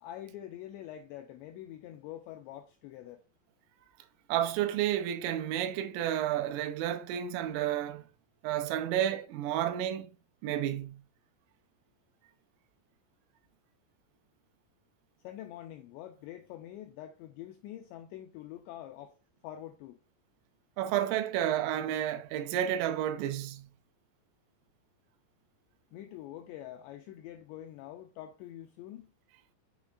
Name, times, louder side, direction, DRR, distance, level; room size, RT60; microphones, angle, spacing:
voice 1, 0.0-3.2 15.2-19.1 19.4-20.0 25.9-29.1, left 12 dB, 90° left, 2.5 m, -45 dB
voice 2, 4.3-8.1 8.4-10.1 10.4-11.0 20.8-23.7, right 11 dB, 85° right, 3.4 m, -31 dB
7.2 x 7.1 x 2.4 m
omnidirectional pair, 5.7 m